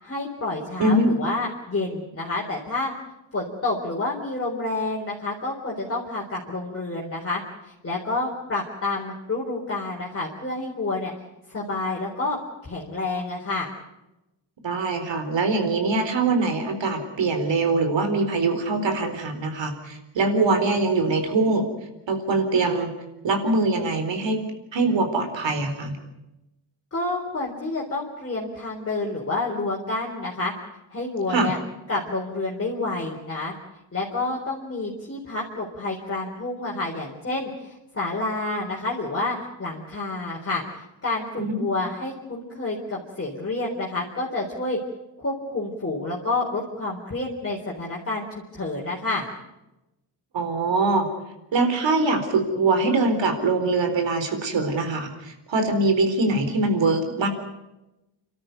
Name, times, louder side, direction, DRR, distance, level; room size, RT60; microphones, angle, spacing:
voice 1, 0.0-2.9 3.3-11.1 11.5-12.4 12.6-13.7 26.9-30.5 30.9-31.6 31.9-33.5 33.9-44.8 45.2-49.3, left 2 dB, 30° left, -3 dB, 3.9 m, -29 dB
voice 2, 0.8-1.2 14.6-21.7 22.1-22.9 23.2-24.5 24.7-26.0 31.3-31.5 41.4-41.7 50.3-51.1 51.5-57.3, right 3 dB, 80° right, 7 dB, 4.2 m, -23 dB
30.0 x 13.0 x 9.3 m, 0.97 s
wide cardioid pair, 120°, 44 cm